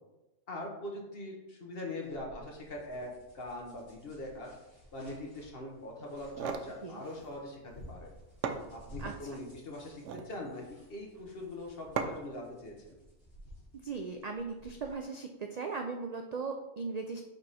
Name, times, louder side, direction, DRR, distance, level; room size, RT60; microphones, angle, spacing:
voice 1, 0.5-4.5 4.9-8.1 8.7-10.6 10.9-12.9, left 1 dB, 55° left, 0 dB, 1.3 m, -42 dB
sound 1, 2.0-14.9, equal, 30° left, 2.0 m, -55 dB
sound 2, 6.1-6.7 8.0-8.1 8.4-9.2 9.9-10.3 12.0-12.4, right 6 dB, 85° right, 0.9 m, -36 dB
voice 2, 9.0-9.4 13.8-17.2, right 4 dB, 60° right, 4 dB, 0.4 m, -38 dB
5.2 x 4.8 x 4.1 m, 1.0 s
omnidirectional pair, 1.2 m